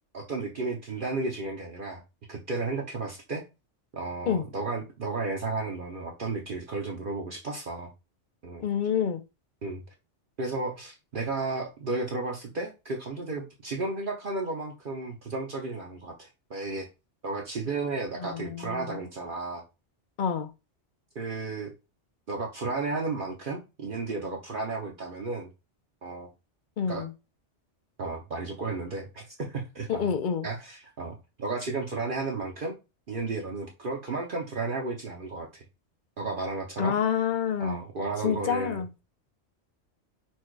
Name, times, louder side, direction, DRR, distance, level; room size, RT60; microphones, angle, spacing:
voice 1, 0.1-2.0 2.3-3.4 3.9-7.9 8.4-8.6 9.6-9.8 10.4-16.9 17.2-19.6 21.1-21.7 22.3-25.5 26.0-26.3 26.8-27.0 28.0-30.1 30.4-32.8 33.1-35.6 36.2-37.0 37.6-38.8, right 3 dB, 50° right, 0.9 m, -33 dB
voice 2, 8.6-9.2 18.2-19.0 20.2-20.5 26.8-27.1 29.9-30.5 36.8-37.8 38.2-38.9, left 7 dB, 55° left, 0.6 m, -28 dB
4.4 x 2.4 x 4.5 m
omnidirectional pair, 1.2 m